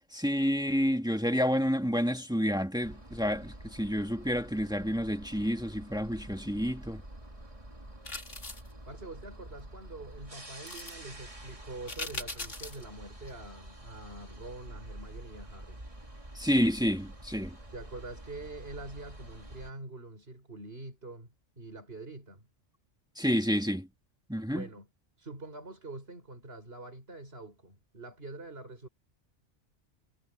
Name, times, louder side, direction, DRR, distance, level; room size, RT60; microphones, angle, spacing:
voice 1, 0.1-7.0 16.4-17.6 23.2-23.9 24.3-24.7, equal, 5° right, 1.8 m, -29 dB
sound 1, 2.8-19.7, right 1 dB, 25° right, 3.3 m, -48 dB
sound 2, 8.1-8.7 10.7-10.9 11.9-12.8 13.3-13.4, left 3 dB, 70° left, 3.9 m, -40 dB
voice 2, 8.9-15.8 17.7-22.5 24.5-24.9 25.2-28.9, right 2 dB, 50° right, 4.6 m, -45 dB
omnidirectional pair, 1.3 m